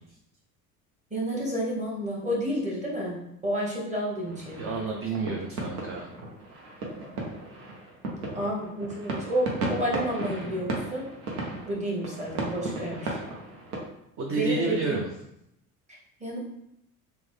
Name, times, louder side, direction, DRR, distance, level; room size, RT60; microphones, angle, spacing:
voice 1, 1.1-4.6 8.3-11.0 11.7-13.2 14.3-14.9 15.9-16.4, right 1 dB, 15° right, -4 dB, 1.1 m, -30 dB
sound 1, 4.2-13.8, right 2 dB, 85° right, 0.7 m, -35 dB
voice 2, 4.6-6.1 14.2-15.0, right 3 dB, 30° right, 0 dB, 0.5 m, -30 dB
3.1 x 2.1 x 3.2 m, 0.80 s
hypercardioid pair, 65°, 43 cm